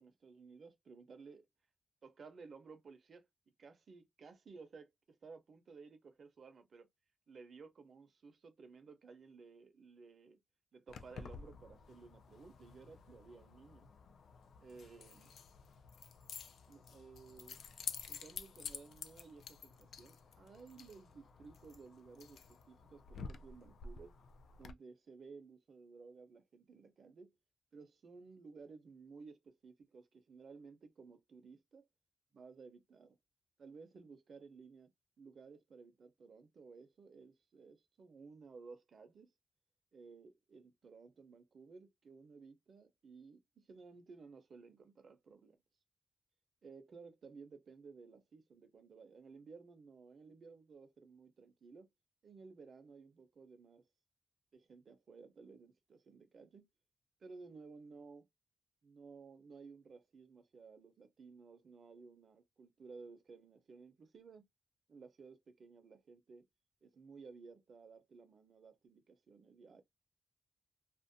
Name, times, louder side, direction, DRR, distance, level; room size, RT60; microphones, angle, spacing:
voice 1, 0.0-1.5 2.0-3.3 3.6-6.9 7.3-10.4 10.7-13.9 14.6-15.3 16.7-17.6 18.1-24.1 24.6-27.4 27.7-31.9 32.3-33.2 33.6-34.9 35.2-39.3 39.9-45.6 46.6-51.9 52.2-53.8 54.5-56.6 57.2-58.3 58.8-64.4 64.9-66.4 66.8-69.8, right 4 dB, 50° right, 0.6 m, -56 dB
Keys jangling, 10.9-24.7, left 6 dB, 80° left, 0.3 m, -51 dB
2.5 x 2.1 x 2.5 m
wide cardioid pair, 145°, 0 cm